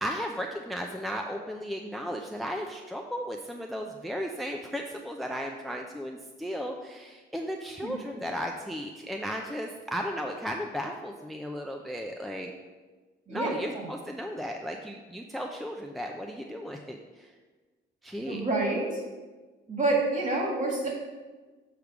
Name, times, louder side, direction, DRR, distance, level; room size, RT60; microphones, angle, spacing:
voice 1, 0.0-12.5 13.3-17.3 18.0-18.5, equal, ahead, 2 dB, 0.5 m, -35 dB
voice 2, 13.3-13.9 18.3-19.0 19.7-20.9, right 2 dB, 40° right, -2 dB, 2.3 m, -28 dB
6.6 x 3.4 x 5.9 m, 1.3 s
cardioid pair, 90°, 20 cm